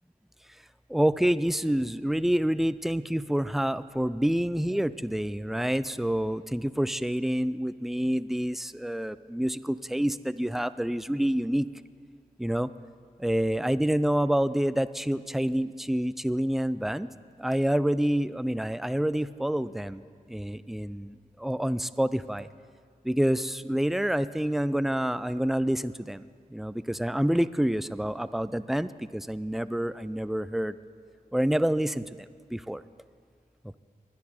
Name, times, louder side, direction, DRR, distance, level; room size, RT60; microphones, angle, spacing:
voice 1, 0.9-11.7 12.4-12.7 13.2-17.1 17.4-20.0 20.3-22.5 23.0-30.8 31.3-32.8, equal, ahead, 15 dB, 0.4 m, -27 dB
20.5 x 10.5 x 4.4 m, 2.1 s
cardioid pair, 60°, 15 cm